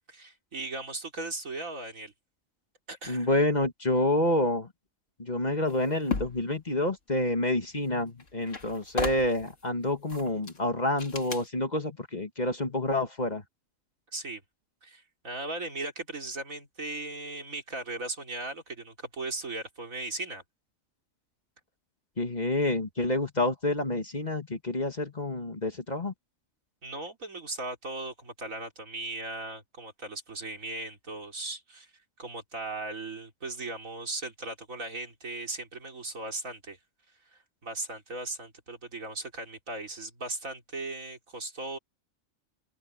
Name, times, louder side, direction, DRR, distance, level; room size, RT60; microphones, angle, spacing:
voice 1, 0.1-2.1 2.9-3.3 14.1-14.4 14.8-20.4 26.8-31.9 32.2-36.8 37.3-41.8, right 2 dB, 75° right, 4.1 m, -38 dB
voice 2, 3.1-4.7 5.2-13.4 22.2-26.1, left 1 dB, 30° left, 1.8 m, -28 dB
sound 1, 5.7-6.5 7.9-8.0 8.2-9.5 10.1-10.6 11.0-11.5, left 4 dB, 65° left, 2.5 m, -35 dB
omnidirectional pair, 1.4 m